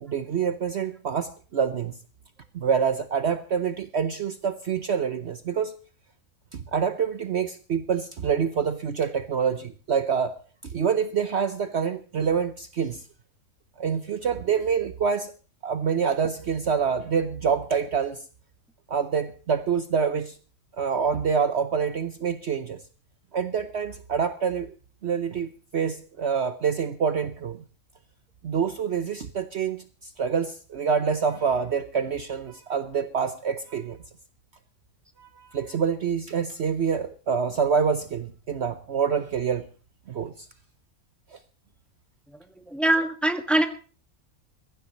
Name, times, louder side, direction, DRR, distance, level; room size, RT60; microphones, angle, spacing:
voice 1, 0.0-1.9 2.5-5.8 6.5-13.0 13.8-15.3 15.6-18.2 18.9-20.4 20.8-22.8 23.3-24.7 25.0-27.6 28.4-34.0 35.2-39.7 40.1-40.5 41.3-41.4, right 6 dB, 55° right, 1.0 m, -26 dB
voice 2, 42.7-43.7, right 1 dB, ahead, 1.5 m, -22 dB
22.5 x 15.0 x 3.0 m
omnidirectional pair, 1.5 m